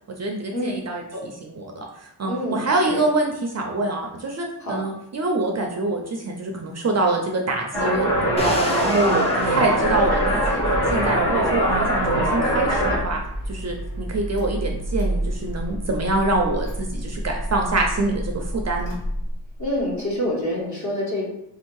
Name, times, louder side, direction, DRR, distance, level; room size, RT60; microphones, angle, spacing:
voice 1, 0.2-10.6 10.9-13.2 13.5-19.0, right 2 dB, 40° right, 2 dB, 0.5 m, -25 dB
voice 2, 2.2-3.0 4.6-4.8 19.6-21.3, left 1 dB, 40° left, -4 dB, 1.4 m, -27 dB
sound 1, 7.7-13.0, right 1 dB, 60° left, 1.3 m, -22 dB
Crash cymbal, 8.4-14.3, left 1 dB, 15° left, 0.6 m, -37 dB
Car / Engine starting, 9.8-19.8, right 1 dB, 85° left, 1.6 m, -30 dB
3.9 x 2.7 x 4.5 m, 0.79 s
wide cardioid pair, 175°, 43 cm